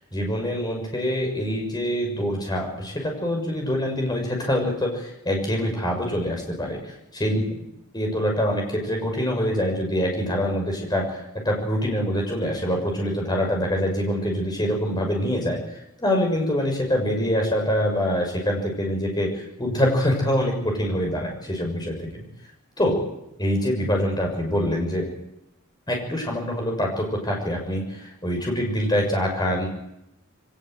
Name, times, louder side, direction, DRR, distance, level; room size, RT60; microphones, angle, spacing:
voice 1, 0.1-6.9 7.2-7.4 7.9-22.3 22.8-23.0 23.4-25.0 25.9-29.7, equal, 20° left, 1 dB, 6.7 m, -25 dB
23.0 x 19.5 x 8.0 m, 0.83 s
head